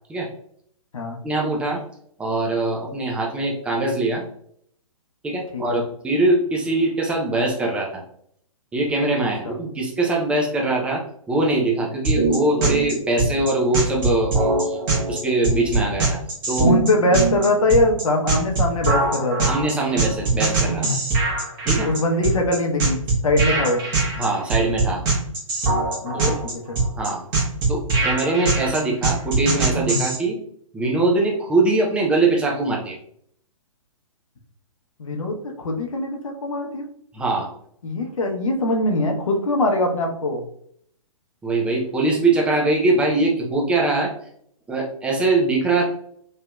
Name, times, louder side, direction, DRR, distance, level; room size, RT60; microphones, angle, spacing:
voice 1, 1.2-1.8 2.2-4.2 5.2-8.0 8.7-14.8 15.1-16.2 16.5-16.7 19.5-20.9 21.6-21.9 24.2-25.0 26.1-26.4 27.0-27.2 27.7-30.4 30.7-33.0 37.1-37.5 41.4-44.1 44.7-45.8, right 2 dB, 5° right, -1 dB, 0.4 m, -22 dB
voice 2, 9.2-9.5 16.6-19.5 21.8-23.8 26.0-26.3 26.7-26.8 35.0-36.9 37.8-40.4, left 2 dB, 70° left, 2 dB, 0.8 m, -22 dB
sound 1, 12.0-30.2, right 3 dB, 40° right, 1.2 m, -22 dB
3.2 x 2.7 x 2.2 m, 0.66 s
figure-of-eight pair, 125°, 18 cm